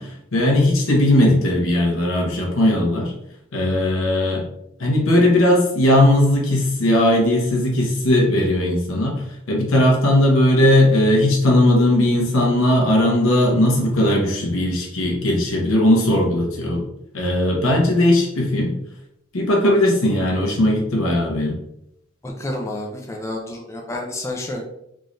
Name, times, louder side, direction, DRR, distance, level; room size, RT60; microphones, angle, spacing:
voice 1, 0.0-3.1 3.5-4.4 4.8-16.8 17.1-18.7 19.3-21.6, left 1 dB, 90° left, 0 dB, 1.0 m, -18 dB
voice 2, 22.2-24.6, left 1 dB, 15° left, 0 dB, 0.4 m, -29 dB
3.7 x 3.1 x 2.6 m, 0.78 s
head